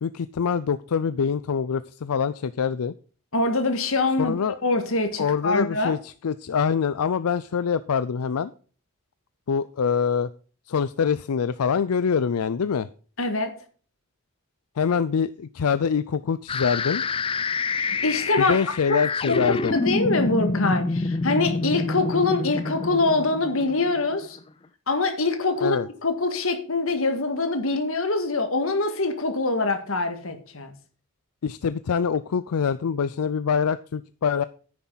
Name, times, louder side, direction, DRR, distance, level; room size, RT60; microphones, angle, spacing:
voice 1, 0.0-2.9 4.2-4.6 5.2-8.5 9.5-10.3 10.7-12.9 14.8-17.0 18.4-19.8 25.6-25.9 31.4-34.4, left 6 dB, 85° left, 15 dB, 0.5 m, -25 dB
voice 2, 3.3-5.9 13.2-13.5 17.8-18.6 19.3-24.4 24.9-30.7, left 3 dB, 65° left, 7 dB, 1.9 m, -24 dB
sound 1, 16.5-24.4, left 3 dB, 25° left, 0.4 m, -27 dB
10.0 x 9.6 x 4.0 m, 0.41 s
head